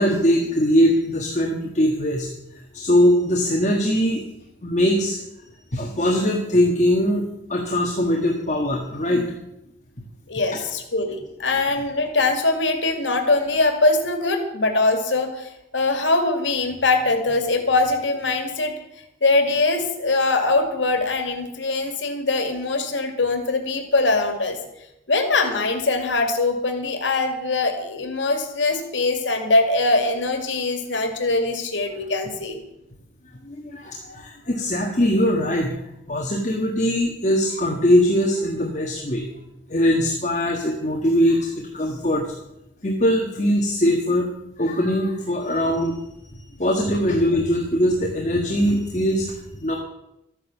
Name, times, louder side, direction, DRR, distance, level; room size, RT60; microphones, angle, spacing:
voice 1, 0.0-4.2 4.6-5.2 5.7-7.2 7.5-9.3 33.4-35.8 36.1-39.3 39.7-42.3 42.8-44.3 44.6-49.8, equal, 40° left, 1 dB, 1.5 m, -21 dB
voice 2, 10.3-18.7 19.2-24.6 25.1-32.6, left 3 dB, 85° left, 6 dB, 2.2 m, -22 dB
13.0 x 9.9 x 7.1 m, 0.86 s
head